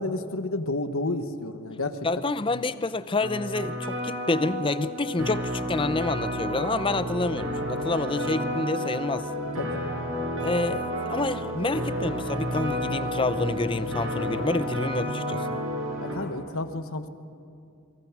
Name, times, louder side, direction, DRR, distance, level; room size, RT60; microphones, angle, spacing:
voice 1, 0.0-2.1 2.5-2.6 9.6-9.9 16.0-17.1, left 2 dB, 70° left, 1.2 m, -31 dB
voice 2, 2.0-9.3 10.4-15.6, left 3 dB, 20° left, 0.5 m, -28 dB
sound 1, 3.2-16.1, equal, 60° right, 6.9 m, -31 dB
28.5 x 22.5 x 6.0 m
head